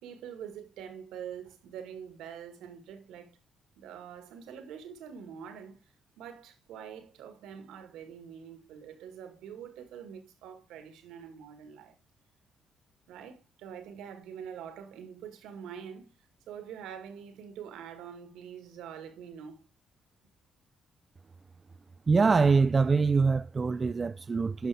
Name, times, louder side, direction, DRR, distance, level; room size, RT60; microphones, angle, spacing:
voice 1, 0.0-3.4 3.8-5.8 6.2-11.9 13.1-16.1 16.5-19.6, right 8 dB, 80° right, 1.7 m, -45 dB
voice 2, 22.1-24.7, right 4 dB, 35° right, 0.4 m, -24 dB
11.0 x 5.8 x 3.4 m
supercardioid pair, 55°, 0 cm